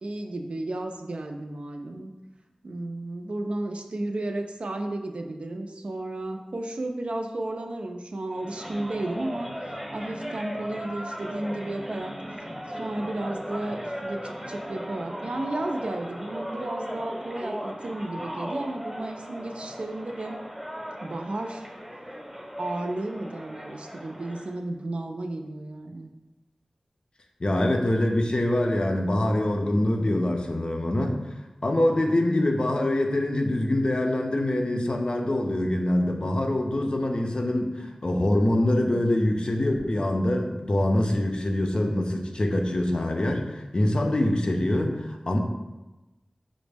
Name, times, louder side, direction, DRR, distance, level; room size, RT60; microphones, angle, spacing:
voice 1, 0.0-2.1 2.6-12.1 12.7-20.4 21.0-21.7 22.6-26.1, right 2 dB, 70° right, 4 dB, 0.4 m, -33 dB
sound 1, 8.3-24.5, equal, 5° right, 0.8 m, -37 dB
voice 2, 27.4-31.2 31.6-45.4, left 1 dB, 50° left, 3 dB, 0.5 m, -24 dB
5.1 x 2.0 x 3.3 m, 1.1 s
wide cardioid pair, 65°, 2 cm